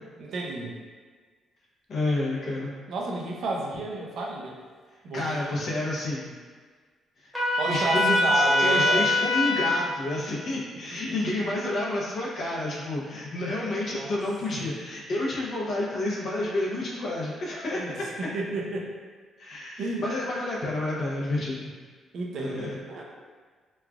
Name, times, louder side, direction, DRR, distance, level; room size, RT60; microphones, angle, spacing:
voice 1, 0.2-0.7 2.9-4.6 5.0-5.6 7.6-9.1 11.0-11.1 13.8-14.2 14.6-14.7 17.7-18.9 19.8-20.1 22.1-23.0, right 2 dB, 70° right, -1 dB, 0.5 m, -31 dB
voice 2, 1.9-2.7 5.1-6.3 7.2-7.3 7.7-18.1 19.4-21.7 22.4-22.8, left 1 dB, 60° left, -5 dB, 0.7 m, -30 dB
Trumpet, 7.3-9.8, left 1 dB, ahead, 1.0 m, -23 dB
3.0 x 2.3 x 2.3 m, 1.5 s
cardioid pair, 90°, 0 cm